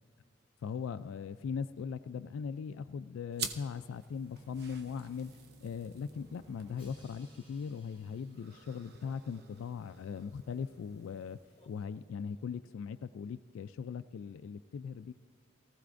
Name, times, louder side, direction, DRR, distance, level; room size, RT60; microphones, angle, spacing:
voice 1, 0.6-5.3 5.6-11.4 11.7-15.1, left 6 dB, 90° left, 10 dB, 0.3 m, -39 dB
sound 1, 3.3-12.3, right 7 dB, 50° right, 0.6 m, -49 dB
Drum, 4.4-9.2, equal, 25° right, 1.3 m, -59 dB
Laughter, 9.0-10.6 11.6-12.8, left 2 dB, 30° left, 0.8 m, -65 dB
18.5 x 14.0 x 2.5 m, 2.3 s
head